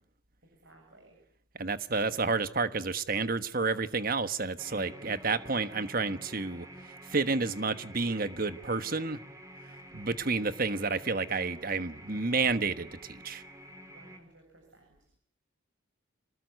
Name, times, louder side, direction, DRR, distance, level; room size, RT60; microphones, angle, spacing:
voice 1, 0.4-1.2 2.1-2.3 13.9-15.1, right 1 dB, 60° right, 7.7 m, -59 dB
voice 2, 1.6-6.7 7.1-9.2 9.9-13.4, right 4 dB, 45° right, 1.3 m, -30 dB
sound 1, 4.6-14.2, equal, 15° right, 3.7 m, -49 dB
26.0 x 20.0 x 9.5 m
head